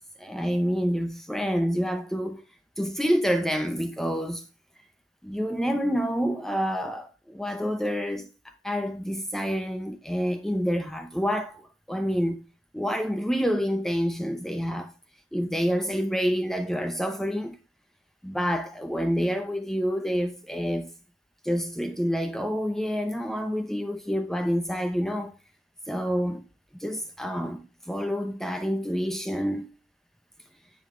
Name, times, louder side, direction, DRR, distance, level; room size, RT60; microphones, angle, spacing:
voice 1, 0.2-2.4 2.8-4.4 5.2-12.4 12.7-14.9 15.3-17.6 18.2-20.9 21.4-25.3 25.9-26.4 26.8-29.7, equal, ahead, 0.6 m, -28 dB
10.0 x 7.2 x 3.7 m
head